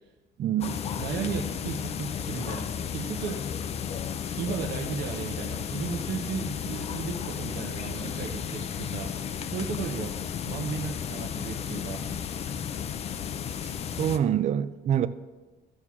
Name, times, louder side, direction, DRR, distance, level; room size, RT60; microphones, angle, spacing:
voice 1, 0.4-0.8 14.0-15.1, right 10 dB, 40° right, 0.4 m, -25 dB
sound 1, 0.6-14.2, left 8 dB, 35° left, 0.4 m, -33 dB
voice 2, 1.0-3.7 4.4-9.1 9.4-10.1 10.5-12.0, right 6 dB, 65° right, 0.9 m, -35 dB
13.5 x 5.9 x 3.6 m
cardioid pair, 140°, 18 cm